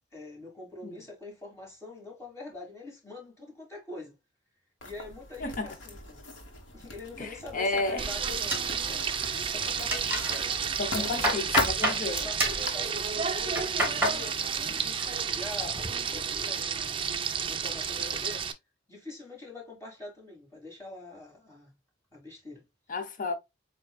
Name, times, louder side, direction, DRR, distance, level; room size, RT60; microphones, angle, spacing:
voice 1, 0.1-4.2 4.8-6.2 6.7-10.6 10.9-11.4 11.9-17.1 17.5-18.5 18.9-21.7 22.1-22.6, left 2 dB, 15° left, 2.4 m, -44 dB
Writing, 4.8-12.7, left 2 dB, 80° left, 1.4 m, -39 dB
voice 2, 5.4-5.7 7.2-8.0 10.8-12.2 22.9-23.4, left 3 dB, 45° left, 0.6 m, -32 dB
Frying (food), 8.0-18.5, right 7 dB, 25° right, 0.5 m, -31 dB
sound 1, 8.5-9.3 9.6-10.4 10.8-12.0 12.4-12.7 13.3-14.2 14.6-15.1 15.4-15.9, right 1 dB, 10° right, 1.7 m, -30 dB
7.8 x 2.7 x 2.2 m
head